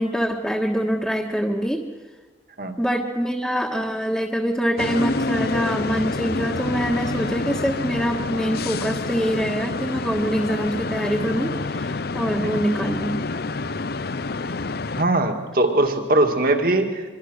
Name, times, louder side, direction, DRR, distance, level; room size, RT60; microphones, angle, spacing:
voice 1, 0.0-1.8 2.8-13.2, equal, ahead, -1 dB, 1.4 m, -24 dB
sound 1, 4.8-15.0, left 3 dB, 55° left, 0.6 m, -28 dB
voice 2, 15.0-17.0, right 2 dB, 50° right, 4 dB, 2.3 m, -21 dB
26.0 x 23.0 x 6.5 m, 1.4 s
head